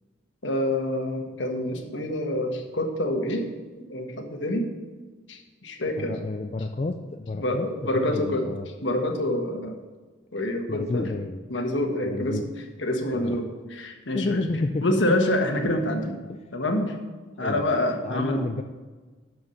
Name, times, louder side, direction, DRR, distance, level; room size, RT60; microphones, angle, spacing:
voice 1, 0.4-3.5 3.9-4.7 5.3-6.1 7.4-8.5 8.8-9.8 10.3-11.1 11.5-12.4 12.8-16.2 16.5-16.9 17.4-18.4, left 1 dB, 70° left, 4 dB, 1.2 m, -27 dB
voice 2, 6.0-7.7 8.1-8.7 9.6-9.7 10.7-11.4 12.0-12.5 13.1-13.4 14.1-14.9 17.4-17.7 18.0-18.6, left 2 dB, 30° left, 5 dB, 0.4 m, -30 dB
11.0 x 4.7 x 6.5 m, 1.3 s
head